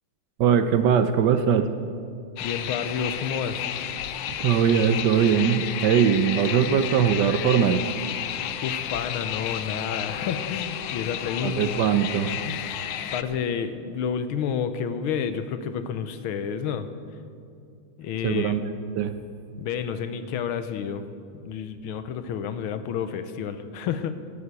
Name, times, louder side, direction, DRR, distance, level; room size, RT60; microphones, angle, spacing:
voice 1, 0.4-1.7 4.3-7.8 11.4-12.3 18.2-18.6 19.0-19.1, right 8 dB, 70° right, 10 dB, 1.1 m, -21 dB
voice 2, 2.4-3.7 8.6-11.7 12.5-12.8 13.1-16.9 18.0-18.5 19.6-21.1 21.4-24.2, left 7 dB, 85° left, 11 dB, 1.7 m, -30 dB
sound 1, 2.4-13.2, left 11 dB, 70° left, 1.3 m, -32 dB
12.5 x 11.0 x 8.3 m, 2.5 s
omnidirectional pair, 2.3 m